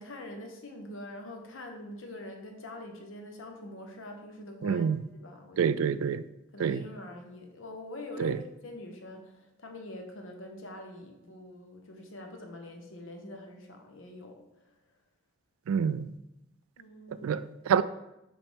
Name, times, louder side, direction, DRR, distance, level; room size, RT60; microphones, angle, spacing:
voice 1, 0.0-4.8 5.1-5.8 6.5-14.4 16.8-17.5, left 1 dB, 65° left, 1.0 m, -44 dB
voice 2, 4.6-5.0 5.6-6.2 6.6-6.8 8.2-8.4 15.7-16.1 17.2-17.8, right 7 dB, 85° right, 0.3 m, -27 dB
5.6 x 5.4 x 3.5 m
head